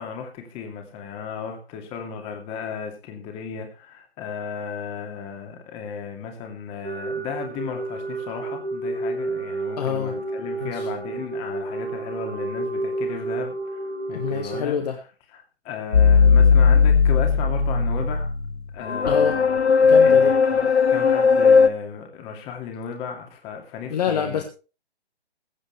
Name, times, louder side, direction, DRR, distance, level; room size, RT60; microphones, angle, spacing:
voice 1, 0.0-14.7 15.3-18.3 18.7-24.4, left 6 dB, 20° left, 3 dB, 2.5 m, -35 dB
sound 1, 6.8-14.6, right 3 dB, 75° right, 6.9 m, -30 dB
voice 2, 9.8-10.2 10.6-10.8 14.1-15.0 19.1-19.4 19.8-20.4 23.9-24.4, left 8 dB, 40° left, 4 dB, 1.7 m, -26 dB
sound 2, 15.9-21.7, left 5 dB, 85° left, 1.2 m, -17 dB
21.5 x 8.0 x 3.4 m, 0.34 s
figure-of-eight pair, 145°, 32 cm